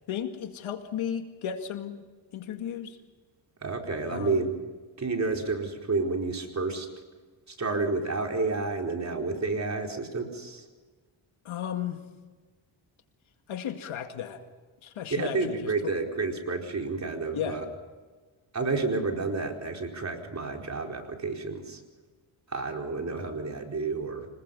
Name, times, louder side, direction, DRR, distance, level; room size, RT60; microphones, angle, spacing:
voice 1, 0.1-2.0 2.3-3.0 4.1-4.4 11.4-12.0 13.5-14.4 14.8-15.7 17.3-17.6, left 9 dB, 80° left, 6 dB, 2.3 m, -34 dB
voice 2, 3.6-4.5 5.0-6.9 7.5-10.7 15.1-17.7 18.5-21.8 22.5-24.3, right 3 dB, 35° right, 2 dB, 4.5 m, -30 dB
26.5 x 20.5 x 5.5 m, 1.4 s
cardioid pair, 85°, 47 cm